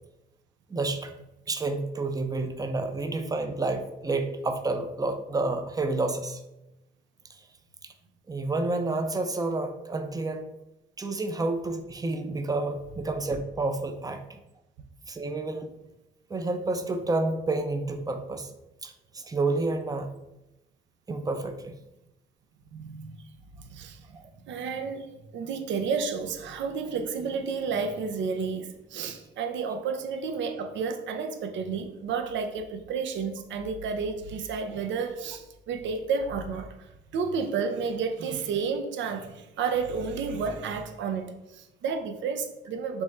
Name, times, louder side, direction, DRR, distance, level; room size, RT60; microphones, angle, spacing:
voice 1, 0.7-1.1 1.5-6.4 7.8-7.9 8.3-10.4 11.0-14.4 15.1-15.7 16.3-18.5 18.8-20.1 21.1-21.7 24.1-24.3, right 2 dB, 20° right, 6 dB, 0.5 m, -29 dB
voice 2, 22.7-23.1 23.6-24.2 24.4-43.0, right 5 dB, 70° right, 5 dB, 0.5 m, -31 dB
3.5 x 3.1 x 4.2 m, 0.93 s
cardioid pair, 90°, 20 cm